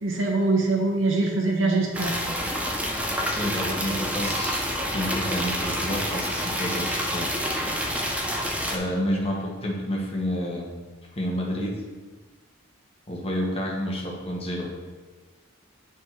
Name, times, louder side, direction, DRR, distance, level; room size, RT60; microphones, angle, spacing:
voice 1, 0.0-2.2, right 3 dB, 70° right, 0 dB, 1.1 m, -23 dB
sound 1, 1.9-8.8, equal, 5° right, 0.6 m, -28 dB
voice 2, 3.3-4.6 4.9-7.4 8.7-10.8 11.1-11.8 13.1-14.7, equal, 30° left, -1 dB, 1.2 m, -29 dB
9.0 x 3.6 x 4.7 m, 1.4 s
head